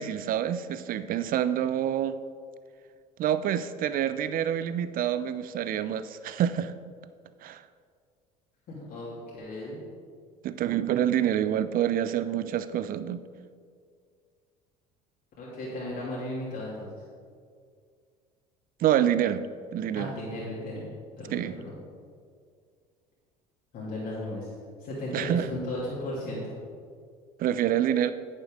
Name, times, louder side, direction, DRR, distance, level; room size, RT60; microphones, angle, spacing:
voice 1, 0.0-2.2 3.2-6.7 7.4-7.6 10.4-13.2 18.8-19.5 19.7-20.1 21.3-21.6 25.1-25.5 27.4-28.1, right 10 dB, 45° right, 13 dB, 0.6 m, -27 dB
voice 2, 8.7-9.8 15.4-17.0 19.9-20.9 21.2-21.7 23.7-24.5 24.8-26.5, left 1 dB, 50° left, -7 dB, 2.8 m, -35 dB
10.5 x 9.3 x 3.8 m, 2.1 s
hypercardioid pair, 65°, 20 cm